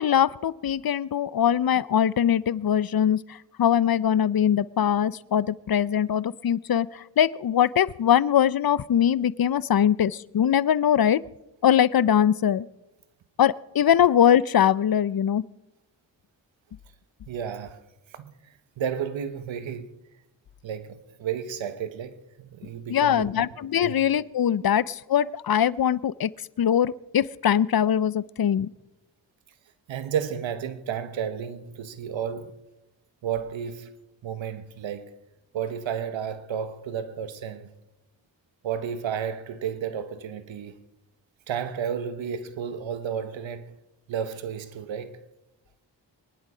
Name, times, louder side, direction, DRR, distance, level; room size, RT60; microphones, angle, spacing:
voice 1, 0.0-11.2 11.6-12.7 13.4-15.4 22.9-26.3 26.6-28.7, left 9 dB, 55° left, 0.7 m, -22 dB
voice 2, 17.3-17.8 18.1-20.0 20.6-23.4 23.8-24.0 29.9-32.5 33.2-33.9 34.2-35.1 35.5-37.7 38.6-40.8 41.5-43.7 44.1-45.1, right 8 dB, 90° right, 1.2 m, -32 dB
23.5 x 11.0 x 5.0 m
cardioid pair, 50°, 44 cm